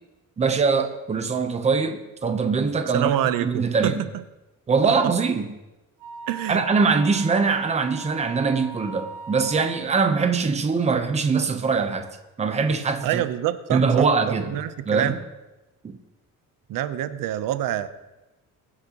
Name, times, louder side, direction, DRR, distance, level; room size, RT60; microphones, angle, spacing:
voice 1, 0.4-3.1 3.4-4.0 4.7-5.5 6.5-12.1 12.4-13.2 13.7-14.5 14.9-15.2 15.8-15.9, right 4 dB, 20° right, 7 dB, 0.8 m, -22 dB
voice 2, 2.9-4.1 5.0-5.1 6.3-6.6 13.0-15.2 16.7-17.9, right 12 dB, 85° right, 12 dB, 0.8 m, -26 dB
Wind instrument woodwind instrument, 6.0-9.9, right 3 dB, 60° right, 2.2 m, -40 dB
22.0 x 9.9 x 3.0 m, 1.0 s
cardioid pair, 175°, 33 cm